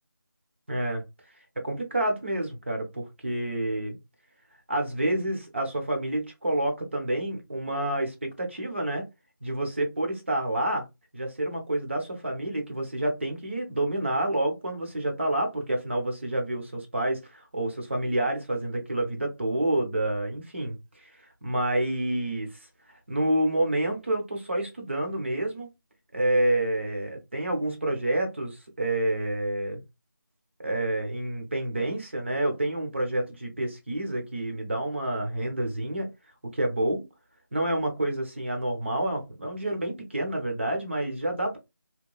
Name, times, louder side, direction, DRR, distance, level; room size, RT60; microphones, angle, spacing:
voice 1, 0.7-1.0 1.6-4.0 4.7-9.1 9.4-10.8 11.1-21.1 21.4-22.5 23.1-25.7 26.1-29.8 30.6-36.1 36.5-37.0 37.5-41.6, right 1 dB, 35° right, 0.6 m, -28 dB
2.9 x 2.1 x 2.2 m
figure-of-eight pair, 175°, 11 cm